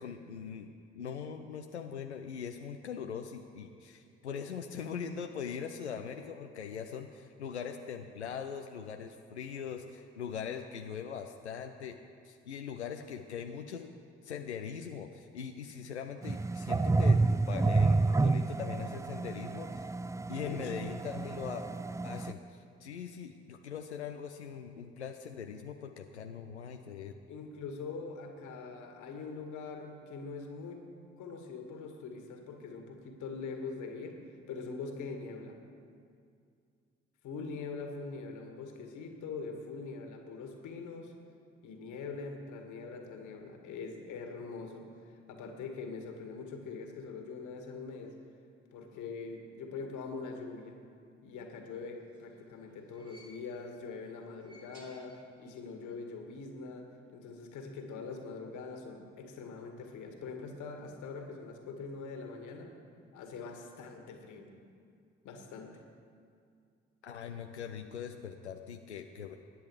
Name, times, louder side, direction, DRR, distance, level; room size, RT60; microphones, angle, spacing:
voice 1, 0.0-12.0 12.2-13.9 14.2-19.9 20.3-21.6 22.0-27.1 67.0-69.4, left 7 dB, 90° left, 4 dB, 0.5 m, -41 dB
sound 1, 16.2-22.3, right 3 dB, 10° right, 0.4 m, -29 dB
voice 2, 20.3-20.9 27.3-30.8 31.2-34.2 34.5-35.6 37.2-41.1 41.6-44.9 45.3-48.2 48.7-50.8 51.2-62.8 63.1-64.5 65.2-65.8, left 4 dB, 65° left, 4 dB, 2.0 m, -43 dB
sound 2, 51.8-53.8 54.2-55.7 55.9-56.0 57.1-57.2, equal, 45° right, 5.1 m, -60 dB
24.5 x 10.0 x 4.8 m, 2.3 s
figure-of-eight pair, 40°, 33 cm